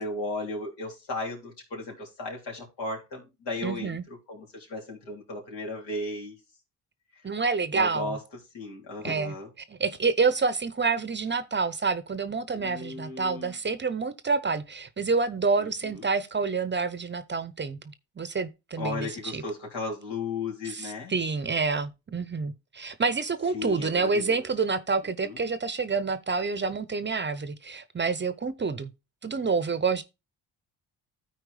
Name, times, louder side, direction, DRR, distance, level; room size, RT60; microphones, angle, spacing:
voice 1, 0.0-4.0 4.3-6.4 7.7-8.2 8.5-9.5 12.5-13.6 15.6-16.0 18.8-21.1 23.5-24.5 25.2-25.4, left 2 dB, 80° left, 3.4 m, -35 dB
voice 2, 3.6-4.0 7.2-8.2 9.0-9.3 9.7-17.8 18.2-19.1 19.3-19.4 20.6-28.9 29.2-30.0, right 4 dB, 25° right, 0.7 m, -28 dB
13.0 x 4.5 x 3.2 m
supercardioid pair, 70°, 41 cm